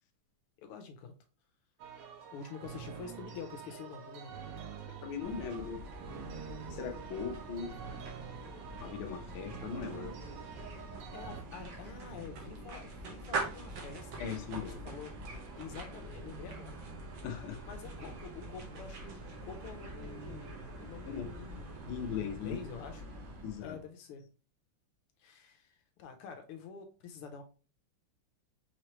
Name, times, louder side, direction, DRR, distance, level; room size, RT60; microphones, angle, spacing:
voice 1, 0.6-1.2 2.3-4.4 9.2-9.3 11.1-14.3 14.7-15.1 15.6-16.8 17.6-23.1 23.6-24.3 25.2-27.4, left 6 dB, 85° left, 1.6 m, -47 dB
sound 1, 1.8-11.4, right 7 dB, 90° right, 1.8 m, -47 dB
voice 2, 5.0-5.8 6.7-7.8 8.8-10.1 14.2-14.8 17.2-17.6 21.1-21.3 21.9-22.6 23.4-23.8, left 7 dB, 70° left, 1.5 m, -39 dB
sound 2, 5.2-23.8, right 2 dB, 65° right, 1.7 m, -44 dB
5.1 x 3.1 x 2.8 m
omnidirectional pair, 2.4 m